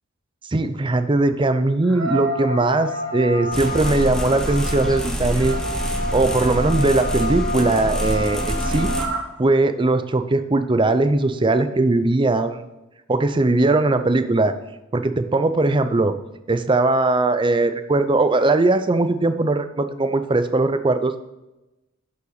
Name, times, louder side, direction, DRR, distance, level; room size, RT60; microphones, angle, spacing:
voice 1, 0.5-5.6 6.1-8.9 9.4-12.6 13.1-14.6 14.9-16.1 16.5-21.1, right 2 dB, 25° right, 10 dB, 0.5 m, -20 dB
sound 1, 0.8-0.9 1.8-9.2, right 1 dB, 70° right, 2.3 m, -29 dB
sound 2, 3.5-9.1, equal, 5° left, 0.9 m, -26 dB
11.5 x 5.6 x 4.0 m, 0.98 s
head